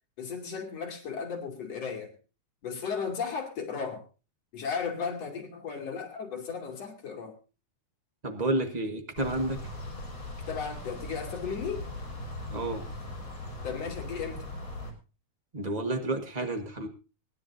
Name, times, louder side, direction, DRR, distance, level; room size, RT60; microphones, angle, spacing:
voice 1, 0.2-2.1 2.6-4.0 4.5-7.4 10.5-11.8 13.6-14.5, left 6 dB, 60° left, 1 dB, 3.8 m, -35 dB
voice 2, 8.2-9.6 12.5-12.9 15.5-16.9, right 2 dB, 65° right, 5 dB, 0.4 m, -30 dB
sound 1, 9.1-14.9, left 2 dB, 40° left, 6.4 m, -39 dB
23.5 x 11.0 x 2.6 m, 0.32 s
omnidirectional pair, 3.4 m